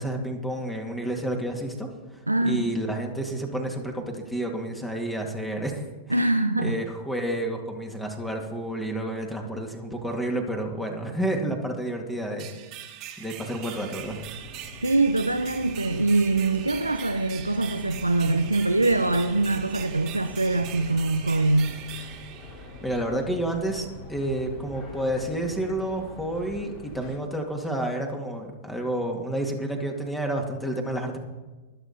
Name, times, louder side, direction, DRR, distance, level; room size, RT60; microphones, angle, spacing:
voice 1, 0.0-6.3 6.6-12.5 13.2-14.2 22.8-31.2, right 1 dB, 5° left, 2.3 m, -30 dB
voice 2, 2.3-2.7 6.1-6.8 14.8-21.7, right 2 dB, 90° right, 0.7 m, -23 dB
sound 1, 12.4-23.1, right 11 dB, 35° right, 1.9 m, -42 dB
sound 2, 14.0-27.2, left 2 dB, 35° left, 4.4 m, -44 dB
24.0 x 8.1 x 4.3 m
figure-of-eight pair, 100°, 0 cm